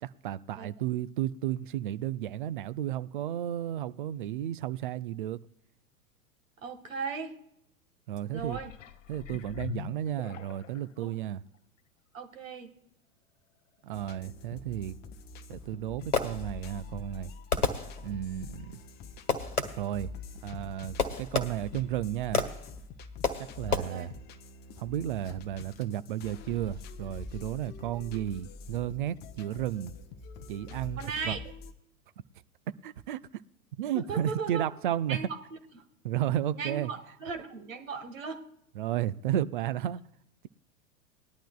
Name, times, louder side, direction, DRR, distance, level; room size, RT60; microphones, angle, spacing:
voice 1, 0.0-5.4 8.1-8.6 9.1-11.4 13.8-15.0 15.5-17.3 18.0-18.8 19.8-20.1 20.4-22.4 23.4-24.1 24.8-29.9 30.5-31.4 32.8-33.2 33.8-35.2 36.0-36.9 38.8-40.0, right 12 dB, 40° right, 0.4 m, -33 dB
voice 2, 6.6-7.4 8.3-8.7 11.0-11.1 12.1-12.7 23.7-24.1 31.0-31.4 33.9-34.7 35.1-35.8 36.5-38.4, right 5 dB, 60° right, 1.8 m, -37 dB
sound 1, 8.3-10.9 11.5-11.6, left 11 dB, 60° left, 0.6 m, -43 dB
sound 2, 13.9-31.7, left 3 dB, 25° left, 0.7 m, -45 dB
Fireworks, 15.6-16.8 17.5-18.4 19.3-20.0 21.0-21.9 22.3-22.8 23.2-23.8, left 4 dB, 85° left, 1.3 m, -31 dB
19.5 x 11.5 x 2.3 m
figure-of-eight pair, 95°, 44 cm